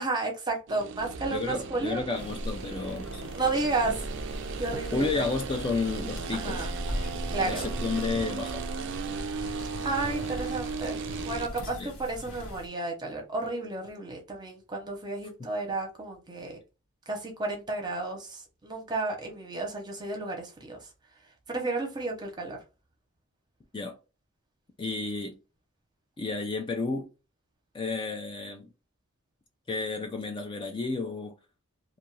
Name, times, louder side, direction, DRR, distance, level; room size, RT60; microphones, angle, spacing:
voice 1, 0.0-2.0 3.3-4.0 4.6-5.2 6.3-6.7 7.3-7.7 9.8-11.0 11.2-16.6 17.1-20.8 21.5-22.6, right 3 dB, 20° right, 0.8 m, -32 dB
sound 1, 0.7-11.5, right 5 dB, 55° right, 0.3 m, -37 dB
voice 2, 1.3-3.2 3.8-3.9 4.9-6.7 7.4-8.7 11.8-11.9 15.4-15.5 23.7-24.0 24.8-25.4 26.2-27.1 27.7-28.7 29.7-31.3, left 3 dB, 25° left, 0.4 m, -32 dB
sound 2, 2.1-12.7, equal, 80° left, 0.9 m, -38 dB
2.6 x 2.4 x 3.0 m
head